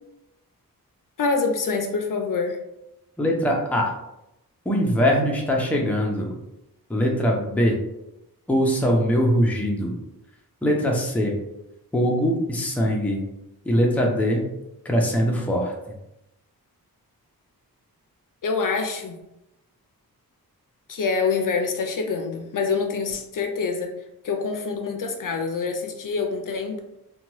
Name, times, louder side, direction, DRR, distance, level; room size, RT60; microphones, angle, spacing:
voice 1, 1.2-2.6 18.4-19.2 20.9-23.9 24.2-26.8, left 4 dB, 60° left, 4 dB, 0.5 m, -26 dB
voice 2, 3.2-3.9 4.7-6.3 6.9-7.8 8.5-10.0 10.6-11.3 11.9-13.2 13.7-14.4 14.9-15.7, equal, 5° left, 0 dB, 0.4 m, -22 dB
2.8 x 2.2 x 3.0 m, 0.88 s
wide cardioid pair, 125°, 36 cm